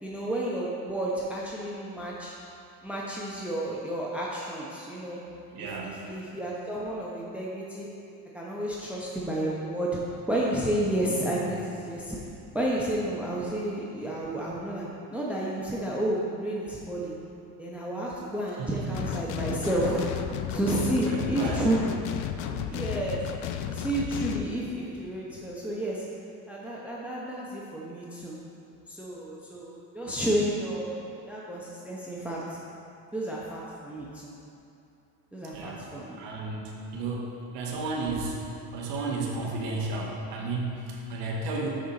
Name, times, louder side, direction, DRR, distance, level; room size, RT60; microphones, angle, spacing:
voice 1, 0.0-2.3 2.8-5.2 5.6-7.9 8.3-10.0 10.3-12.2 12.5-14.8 15.1-17.1 17.6-20.0 20.5-22.0 22.7-23.2 23.7-26.1 26.5-28.4 28.9-30.9 31.3-32.4 33.1-34.3 35.3-36.2, right 1 dB, 5° right, -5 dB, 0.9 m, -31 dB
voice 2, 5.5-6.0 18.6-19.1 20.9-21.6 35.4-35.9 36.2-38.4 38.7-41.7, right 3 dB, 65° right, -1 dB, 1.2 m, -33 dB
sound 1, 18.9-24.5, left 9 dB, 65° left, 0.6 m, -33 dB
6.7 x 5.0 x 4.0 m, 2.6 s
hypercardioid pair, 75°, 46 cm